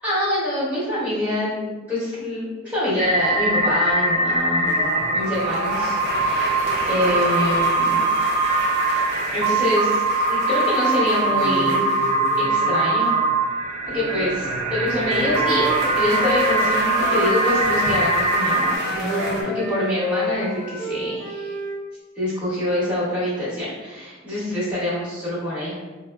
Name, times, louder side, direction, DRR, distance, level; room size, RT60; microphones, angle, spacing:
voice 1, 0.0-4.7 5.1-8.0 9.3-10.0 10.3-11.8 12.4-13.1 13.9-21.6 22.1-25.8, left 1 dB, 5° right, -11 dB, 1.1 m, -25 dB
sound 1, 3.0-18.8, right 2 dB, 40° right, 0.4 m, -22 dB
sound 2, 4.6-13.4 13.7-19.4, right 1 dB, 55° right, 0.8 m, -31 dB
Wind instrument woodwind instrument, 15.0-18.0 18.4-21.8, left 2 dB, 15° left, 0.8 m, -30 dB
4.9 x 2.0 x 2.3 m, 1.3 s
head